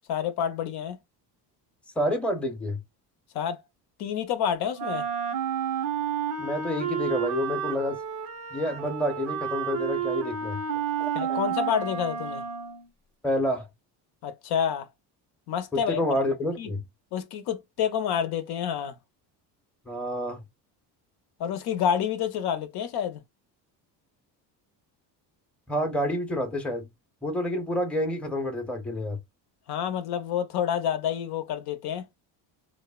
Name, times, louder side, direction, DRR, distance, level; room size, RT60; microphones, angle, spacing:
voice 1, 0.1-1.0 3.3-3.6 4.0-5.1 11.1-12.4 14.2-14.9 15.5-16.0 16.6-16.7 17.1-19.0 21.4-23.2 29.7-32.1, left 8 dB, 65° left, 0.6 m, -28 dB
voice 2, 2.0-2.8 6.4-8.0 8.5-10.6 11.0-11.4 13.2-13.7 15.7-16.8 19.9-20.4 25.7-26.9 27.2-29.2, left 1 dB, 5° left, 0.7 m, -28 dB
Wind instrument woodwind instrument, 4.8-12.9, right 7 dB, 85° right, 0.9 m, -31 dB
3.1 x 2.1 x 2.2 m
cardioid pair, 110°, 42 cm